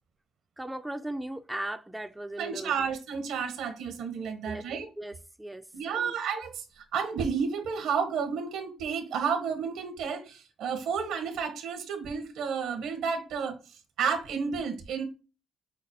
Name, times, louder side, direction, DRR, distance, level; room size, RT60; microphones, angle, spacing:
voice 1, 0.6-2.8 4.4-4.6 5.0-6.1, right 1 dB, 10° right, 0.4 m, -38 dB
voice 2, 2.4-4.9 5.7-15.0, right 6 dB, 85° right, 1.1 m, -31 dB
5.7 x 2.1 x 4.2 m
cardioid pair, 80°, 0 cm